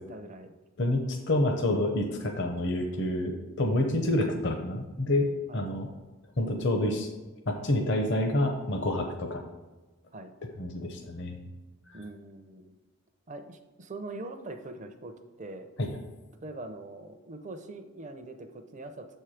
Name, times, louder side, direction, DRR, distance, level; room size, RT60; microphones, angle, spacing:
voice 1, 0.1-0.6 5.5-5.7 10.1-10.3 11.9-12.8 13.3-15.7 16.4-19.1, right 2 dB, 35° right, 7 dB, 0.5 m, -42 dB
voice 2, 0.8-5.3 5.5-5.9 6.4-7.1 7.5-9.4 10.6-11.4 11.9-12.0 15.8-15.9, left 1 dB, 55° left, 4 dB, 0.7 m, -28 dB
7.2 x 4.5 x 4.9 m, 1.2 s
head